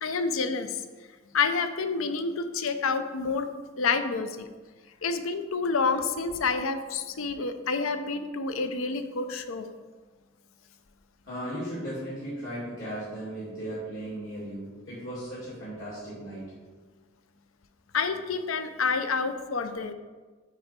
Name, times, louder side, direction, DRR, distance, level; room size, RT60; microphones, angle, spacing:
voice 1, 0.0-0.8 1.3-3.5 3.8-4.5 5.0-9.7 17.9-19.9, left 4 dB, 85° left, 9 dB, 0.6 m, -28 dB
voice 2, 11.2-16.4, right 1 dB, 70° left, -10 dB, 2.7 m, -36 dB
9.0 x 4.9 x 4.4 m, 1.4 s
head